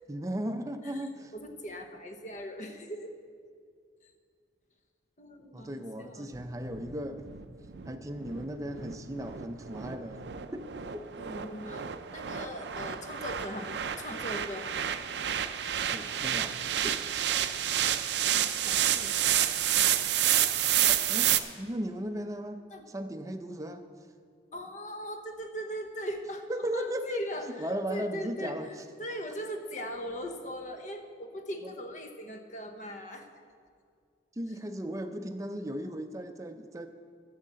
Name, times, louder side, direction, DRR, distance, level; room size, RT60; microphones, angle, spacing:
voice 1, 0.1-1.3 5.5-7.3 7.9-10.2 10.5-10.7 10.9-11.1 15.9-17.2 20.9-23.9 26.5-27.2 27.6-28.8 34.3-36.9, equal, 20° right, 7 dB, 0.5 m, -36 dB
voice 2, 1.3-3.2 4.0-4.1 5.2-6.3 11.2-14.8 18.1-19.4 22.7-22.8 24.5-28.6 29.0-33.3, equal, 40° left, 5 dB, 0.9 m, -40 dB
sound 1, 6.3-21.4, right 11 dB, 70° right, 0.5 m, -29 dB
11.5 x 6.6 x 7.4 m, 2.2 s
head